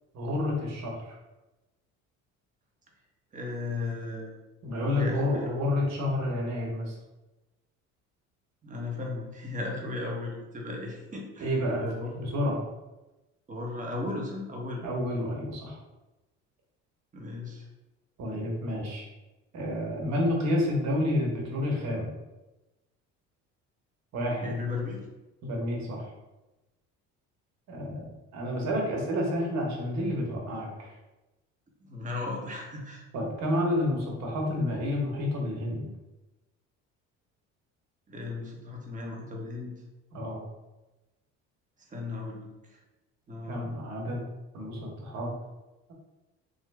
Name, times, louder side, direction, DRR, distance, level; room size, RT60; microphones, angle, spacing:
voice 1, 0.1-1.2 4.6-7.0 11.4-11.8 12.2-12.6 14.8-15.8 18.2-19.1 19.5-22.1 24.1-24.5 25.4-26.1 27.7-30.9 33.1-35.9 40.1-40.4 43.5-44.2 44.5-45.3, left 1 dB, 55° right, -1 dB, 1.0 m, -29 dB
voice 2, 3.3-4.4 4.8-5.5 8.6-12.1 13.5-14.8 17.1-17.7 24.4-25.0 31.9-33.0 38.1-39.7 41.9-42.8 43.3-43.7, left 3 dB, 25° right, -1 dB, 0.8 m, -36 dB
3.0 x 2.1 x 3.4 m, 1.0 s
supercardioid pair, 85°, 32 cm